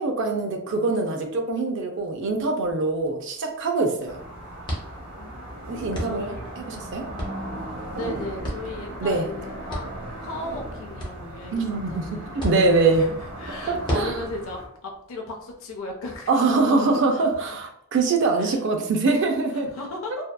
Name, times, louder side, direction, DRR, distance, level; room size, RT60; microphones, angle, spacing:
voice 1, 0.0-4.2 5.7-7.0 9.0-9.3 11.5-13.1 13.9-14.1 16.3-19.7, right 3 dB, 55° right, 4 dB, 0.4 m, -23 dB
sound 1, 2.0-16.2, equal, 20° left, 0.6 m, -38 dB
sound 2, 4.1-14.7, right 1 dB, 90° right, 0.9 m, -37 dB
voice 2, 5.2-6.4 7.9-9.8 10.2-12.4 12.9-17.3 18.4-18.6 19.5-20.2, left 2 dB, 60° left, 0 dB, 0.4 m, -36 dB
2.6 x 2.3 x 2.2 m, 0.70 s
head